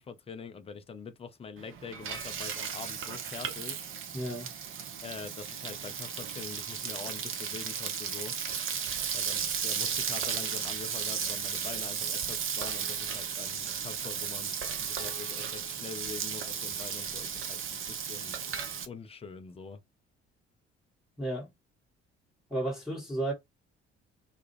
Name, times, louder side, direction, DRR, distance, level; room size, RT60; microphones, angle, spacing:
voice 1, 0.0-3.8 5.0-8.4 9.1-18.4 18.9-19.8, left 5 dB, 15° left, 0.4 m, -44 dB
Frying (food), 1.6-18.9, right 7 dB, 40° right, 0.6 m, -35 dB
voice 2, 4.1-4.5 21.2-21.5 22.5-23.3, right 1 dB, ahead, 1.1 m, -33 dB
2.2 x 2.1 x 3.0 m
figure-of-eight pair, 45°, 34 cm